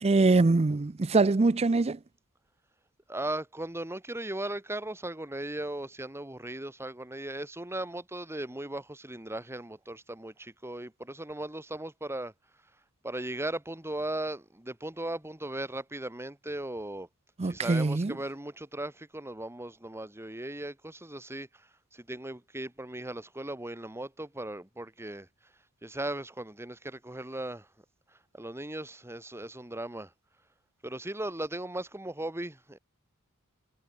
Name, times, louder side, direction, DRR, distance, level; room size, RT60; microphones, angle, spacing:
voice 1, 0.0-2.0 17.4-18.1, right 3 dB, 30° right, 0.5 m, -23 dB
voice 2, 3.1-12.3 13.0-17.1 17.4-25.3 25.8-27.7 28.3-30.1 30.8-32.8, right 1 dB, 10° right, 2.0 m, -37 dB
head